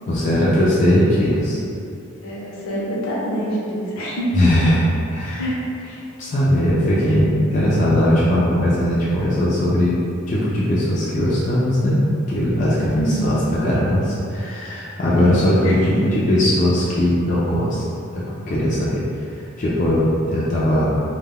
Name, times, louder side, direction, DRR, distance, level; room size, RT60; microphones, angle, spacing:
voice 1, 0.1-1.6 4.3-4.8 5.1-5.4 6.2-9.9 10.3-12.0 12.3-15.7 16.1-17.9 18.1-19.0 19.3-20.9, left 1 dB, 35° left, -8 dB, 0.3 m, -19 dB
voice 2, 2.2-4.4 5.4-6.0 12.9-13.5 15.2-15.9, right 1 dB, 75° left, -6 dB, 0.6 m, -26 dB
2.2 x 2.1 x 3.4 m, 2.5 s
head